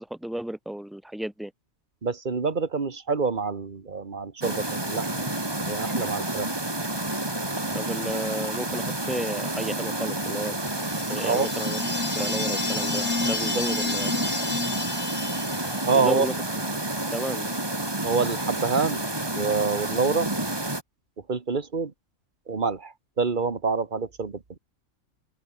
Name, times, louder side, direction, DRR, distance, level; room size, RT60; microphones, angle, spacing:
voice 1, 0.0-1.5 7.7-10.6 11.1-14.3 15.9-16.3 17.1-17.7, right 1 dB, ahead, 2.5 m, -33 dB
voice 2, 2.0-5.3 5.6-6.5 11.2-11.5 15.8-16.3 18.0-19.0 19.3-20.3 21.3-21.9 22.5-24.6, right 4 dB, 35° right, 1.6 m, -26 dB
sound 1, 4.4-20.8, right 1 dB, 15° right, 2.3 m, -30 dB
sound 2, 10.7-16.1, left 3 dB, 65° left, 4.1 m, -30 dB
open air
omnidirectional pair, 1.4 m